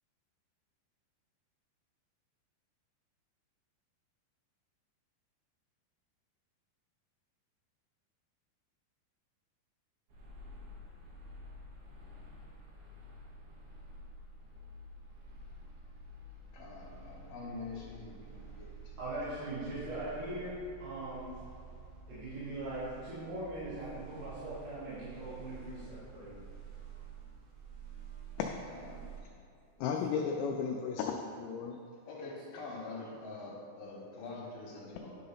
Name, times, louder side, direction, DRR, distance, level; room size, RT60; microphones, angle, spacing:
sound 1, 10.1-29.2, right 3 dB, 75° right, 3.7 m, -50 dB
voice 1, 16.5-18.7 19.7-20.0 28.7-29.0 32.1-35.2, left 3 dB, 65° left, -4 dB, 2.2 m, -45 dB
voice 2, 19.0-21.3 22.1-26.4, right 1 dB, 60° right, -14 dB, 4.1 m, -40 dB
voice 3, 28.4-28.9 29.8-31.8, left 6 dB, 90° left, 2 dB, 2.4 m, -34 dB
11.0 x 3.9 x 5.6 m, 2.5 s
omnidirectional pair, 5.5 m